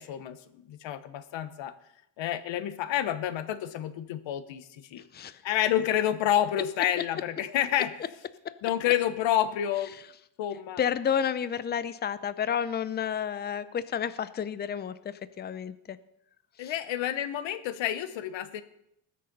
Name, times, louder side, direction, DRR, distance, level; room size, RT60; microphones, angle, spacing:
voice 1, 0.0-1.7 2.2-5.0 5.4-7.9 8.6-9.9 10.4-10.8 16.6-18.6, left 11 dB, 65° left, 13 dB, 1.2 m, -29 dB
voice 2, 5.0-5.4 8.4-8.5 10.8-16.0 16.6-16.7, left 8 dB, 20° left, 15 dB, 0.5 m, -31 dB
20.0 x 6.7 x 5.4 m, 0.78 s
cardioid pair, 130°, 47 cm